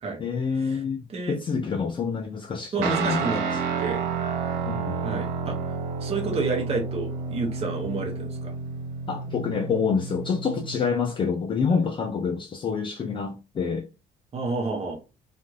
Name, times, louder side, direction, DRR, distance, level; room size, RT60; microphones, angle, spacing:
voice 1, 0.2-3.2 4.7-5.0 9.1-13.9, left 5 dB, 30° left, 0.4 m, -27 dB
voice 2, 2.7-4.0 5.0-5.6 6.0-8.5 11.7-11.8 14.3-15.0, right 3 dB, 35° right, 0.9 m, -30 dB
Guitar, 2.8-11.0, right 5 dB, 90° right, 0.6 m, -30 dB
2.6 x 2.4 x 3.0 m
cardioid pair, 110°, 17 cm